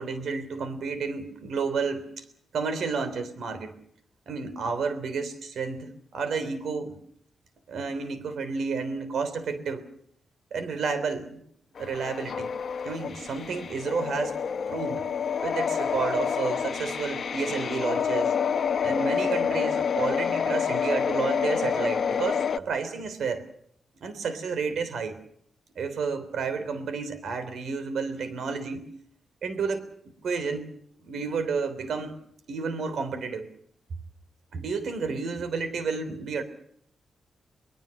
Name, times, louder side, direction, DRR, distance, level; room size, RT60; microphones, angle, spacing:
voice 1, 0.0-2.2 2.5-3.7 4.3-7.0 7.7-9.8 10.5-11.4 11.8-12.5 12.8-14.4 14.7-15.0 15.4-18.4 18.8-23.4 24.0-25.2 25.7-28.9 29.4-29.8 30.2-30.7 31.0-32.2 32.5-33.5 34.5-36.4, right 5 dB, 70° right, 11 dB, 3.4 m, -31 dB
sound 1, 11.8-22.6, left 7 dB, 50° left, 0.9 m, -28 dB
23.0 x 22.0 x 6.5 m, 0.66 s
wide cardioid pair, 155°, 0 cm